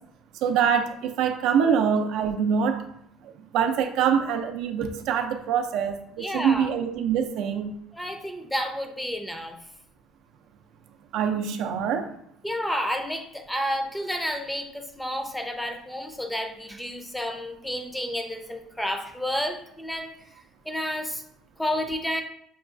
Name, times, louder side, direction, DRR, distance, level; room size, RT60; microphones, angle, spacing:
voice 1, 0.4-2.8 3.5-7.7 11.1-12.1, right 7 dB, 75° right, 6 dB, 0.4 m, -24 dB
voice 2, 6.2-6.7 7.9-9.6 12.4-20.1 20.7-21.2 21.6-22.2, equal, 5° left, 5 dB, 0.5 m, -30 dB
6.0 x 2.3 x 2.5 m, 0.72 s
cardioid pair, 105°, 0 cm